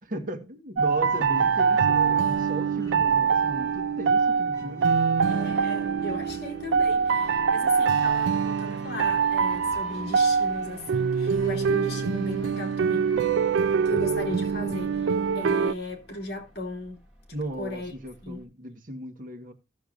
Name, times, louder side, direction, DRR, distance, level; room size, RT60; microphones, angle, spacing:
voice 1, 0.0-4.9 17.3-19.5, right 1 dB, 45° right, 1.3 m, -36 dB
sound 1, 0.8-15.7, right 6 dB, 80° right, 0.4 m, -24 dB
sound 2, 1.1-16.6, equal, 15° left, 2.3 m, -47 dB
voice 2, 2.7-3.0 5.3-13.1 13.8-17.0 17.6-17.9 18.2-18.4, left 1 dB, 60° left, 2.4 m, -37 dB
sound 3, 5.2-18.5, right 1 dB, 5° right, 2.2 m, -55 dB
15.5 x 6.8 x 2.5 m
head